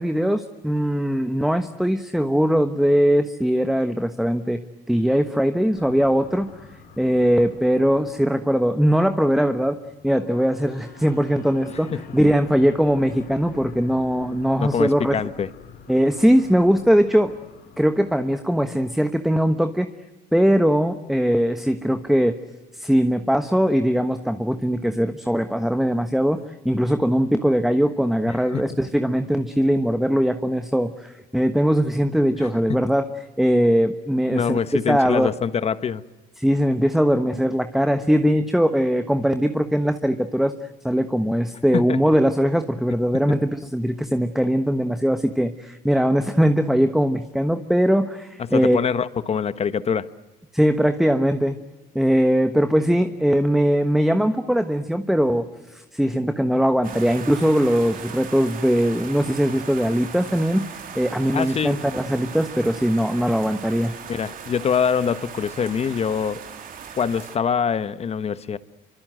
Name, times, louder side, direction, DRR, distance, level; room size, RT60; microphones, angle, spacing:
voice 1, 0.0-4.6 4.9-6.5 7.0-15.2 15.9-17.3 17.8-19.9 20.3-22.3 22.7-33.1 33.4-34.6 34.9-35.3 36.4-40.5 40.8-48.8 50.5-51.6 51.9-63.9, equal, ahead, 1.2 m, -20 dB
sound 1, 5.7-19.6, left 5 dB, 65° left, 7.8 m, -46 dB
voice 2, 14.5-15.5 28.5-28.6 32.7-32.8 34.3-36.0 41.7-42.0 48.4-50.1 61.3-61.8 64.1-66.4 66.9-68.6, left 7 dB, 40° left, 1.2 m, -24 dB
sound 2, 56.8-67.4, right 7 dB, 55° right, 3.3 m, -38 dB
27.0 x 25.0 x 7.8 m
cardioid pair, 110°, 17 cm